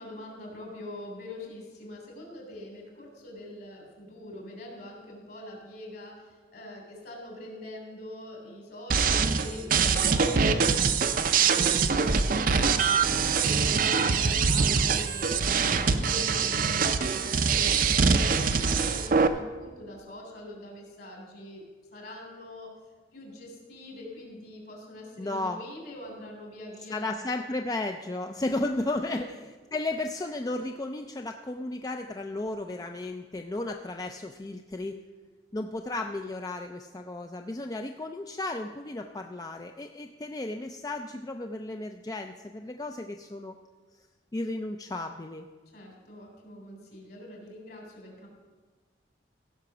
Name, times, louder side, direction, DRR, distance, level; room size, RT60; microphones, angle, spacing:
voice 1, 0.0-21.6 21.9-22.7 23.1-27.3 28.2-28.4 29.0-29.4 45.7-48.3, left 1 dB, 60° left, 0 dB, 3.3 m, -44 dB
sound 1, 8.9-19.3, right 5 dB, 50° right, 0.5 m, -24 dB
voice 2, 25.2-25.6 26.9-29.3 29.7-35.0 35.5-43.5 44.3-45.5, left 2 dB, 20° left, 5 dB, 0.4 m, -34 dB
15.5 x 5.8 x 6.1 m, 1.4 s
head